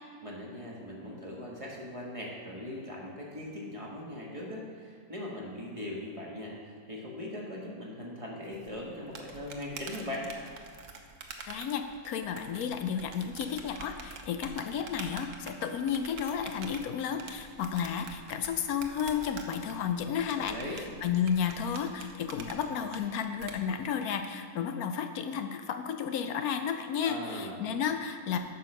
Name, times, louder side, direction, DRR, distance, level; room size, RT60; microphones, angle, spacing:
voice 1, 0.2-10.3 20.4-20.8 27.0-27.6, left 1 dB, 25° right, -3 dB, 1.4 m, -40 dB
sound 1, 8.5-23.5, right 5 dB, 60° right, 1.1 m, -46 dB
voice 2, 11.5-28.4, left 7 dB, 75° left, 7 dB, 1.1 m, -32 dB
8.9 x 5.6 x 6.4 m, 2.2 s
omnidirectional pair, 1.6 m